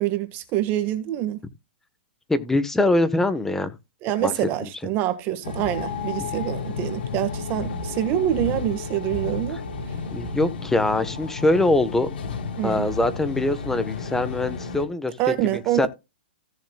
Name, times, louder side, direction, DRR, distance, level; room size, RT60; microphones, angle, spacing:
voice 1, 0.0-1.4 4.0-9.6 12.6-12.9 15.2-15.9, right 13 dB, 35° right, 1.7 m, -25 dB
voice 2, 2.3-3.7 4.2-4.3 6.2-6.3 10.1-12.1 12.6-15.9, left 2 dB, 5° left, 1.2 m, -23 dB
sound 1, 5.4-14.9, left 5 dB, 60° left, 4.0 m, -32 dB
17.0 x 7.2 x 2.4 m
hypercardioid pair, 130°, 6 cm